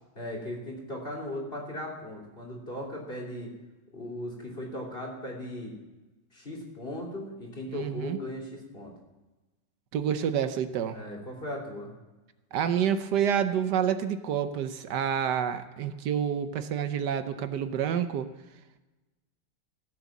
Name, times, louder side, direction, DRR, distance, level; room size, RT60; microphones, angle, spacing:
voice 1, 0.1-3.5 3.9-5.7 6.3-8.9 10.9-11.9, left 1 dB, 30° left, -2 dB, 3.3 m, -37 dB
voice 2, 7.7-8.2 9.9-11.0 12.5-18.3, right 8 dB, 70° right, 10 dB, 1.4 m, -28 dB
16.0 x 8.0 x 7.2 m, 1.1 s
omnidirectional pair, 1.9 m